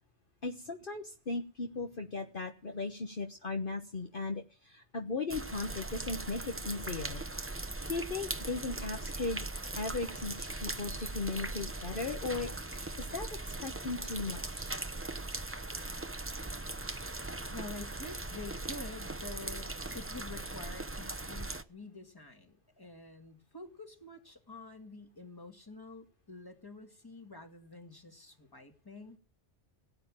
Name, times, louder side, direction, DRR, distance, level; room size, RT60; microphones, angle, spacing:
voice 1, 0.4-7.2 7.9-9.5 9.7-14.8, left 3 dB, 50° left, 3 dB, 1.4 m, -37 dB
sound 1, 5.3-21.6, right 2 dB, 15° right, 0.7 m, -39 dB
voice 2, 17.5-19.7 19.9-29.2, left 3 dB, 20° left, 4 dB, 2.2 m, -48 dB
17.5 x 9.2 x 7.6 m, 0.38 s
omnidirectional pair, 1.2 m